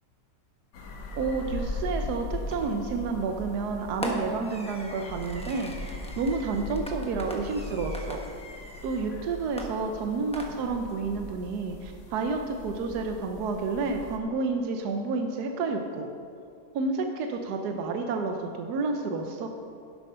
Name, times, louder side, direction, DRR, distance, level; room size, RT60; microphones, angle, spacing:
sound 1, 0.7-14.2, left 2 dB, 65° left, 1.6 m, -39 dB
voice 1, 1.1-8.2 8.8-16.1 16.7-19.5, right 4 dB, 70° right, 4 dB, 1.1 m, -30 dB
Fireworks, 2.5-2.9 4.0-9.1 9.6-10.9, equal, 5° left, 0.5 m, -40 dB
10.5 x 7.9 x 5.5 m, 2.5 s
omnidirectional pair, 2.0 m